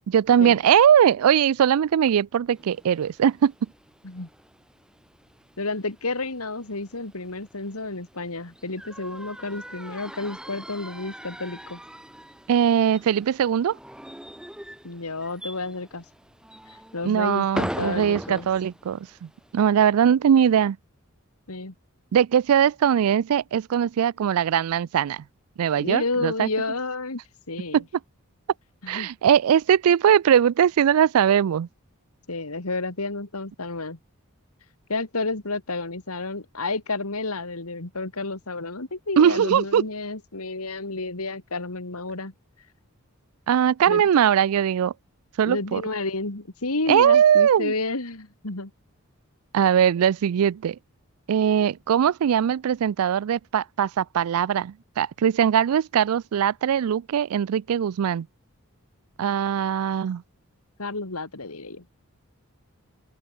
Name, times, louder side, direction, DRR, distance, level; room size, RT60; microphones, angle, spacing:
voice 1, 0.1-3.5 12.5-13.8 17.0-20.8 22.1-25.2 25.6-26.5 27.7-27.8 28.9-31.7 39.2-39.8 43.5-44.9 45.4-45.8 46.9-47.7 49.5-50.8 51.3-58.3 59.2-60.2, right 8 dB, 80° right, 0.3 m, -20 dB
sound 1, 2.5-19.7, equal, 5° right, 0.9 m, -41 dB
voice 2, 5.6-11.8 14.8-16.0 16.9-18.5 21.5-21.7 25.8-27.2 27.5-27.8 28.8-29.1 32.3-34.0 34.9-42.3 43.9-44.0 45.4-48.7 60.8-61.8, left 3 dB, 80° left, 2.6 m, -31 dB
open air
head